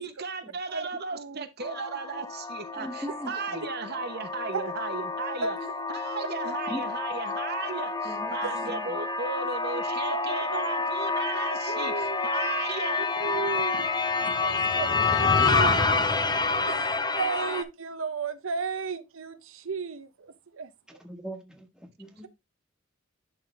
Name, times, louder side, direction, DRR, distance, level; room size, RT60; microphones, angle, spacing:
voice 1, 0.0-5.6 5.9-13.1, right 4 dB, 55° right, 1.0 m, -36 dB
voice 2, 0.7-1.4 4.5-4.6 5.4-5.7 6.2-6.5 8.9-9.1 9.9-10.7 11.7-12.4 13.2-16.0 16.7-21.0, right 4 dB, 85° right, 0.8 m, -35 dB
sound 1, 1.6-17.6, left 4 dB, 20° left, 0.8 m, -28 dB
voice 3, 2.8-3.6 6.7-6.9 8.0-8.9 20.9-22.3, equal, 5° right, 1.5 m, -40 dB
11.0 x 3.8 x 3.4 m
head